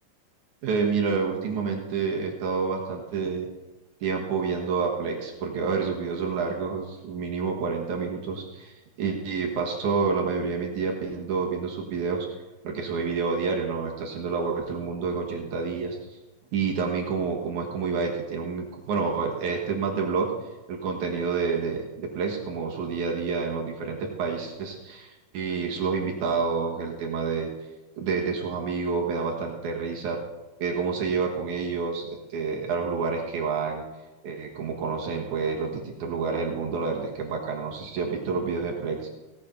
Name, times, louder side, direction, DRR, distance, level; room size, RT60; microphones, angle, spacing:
voice 1, 0.6-3.5 4.0-12.4 12.6-16.2 16.5-20.3 20.7-27.5 28.0-30.2 30.6-33.8 34.2-39.1, right 5 dB, 75° right, 0 dB, 3.0 m, -28 dB
17.5 x 8.4 x 5.4 m, 1.1 s
omnidirectional pair, 3.5 m